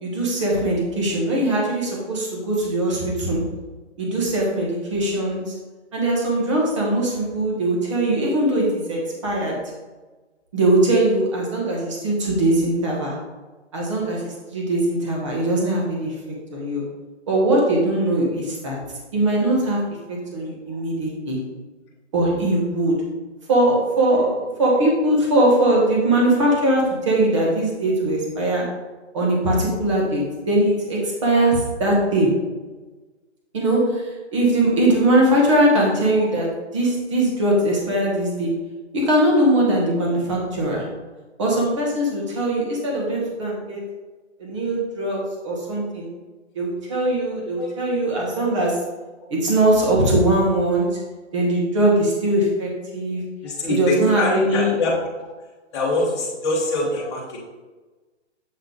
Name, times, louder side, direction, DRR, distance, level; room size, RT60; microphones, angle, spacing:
voice 1, 0.0-3.4 4.0-5.4 5.9-9.5 10.5-13.1 13.7-16.1 16.5-16.8 17.3-18.8 19.1-19.8 20.1-21.4 22.1-23.0 23.5-28.6 29.1-32.3 33.5-34.0 34.3-36.5 36.7-38.5 38.9-40.8 41.4-43.8 44.4-46.1 46.5-48.8 49.3-50.9 51.3-53.2 53.7-54.7, right 1 dB, 25° right, -3 dB, 1.2 m, -21 dB
voice 2, 20.4-20.8 47.5-47.7 48.4-48.5 53.4-55.0 55.7-57.4, left 2 dB, 25° left, -6 dB, 1.4 m, -24 dB
7.5 x 3.4 x 3.9 m, 1.3 s
hypercardioid pair, 175°, 36 cm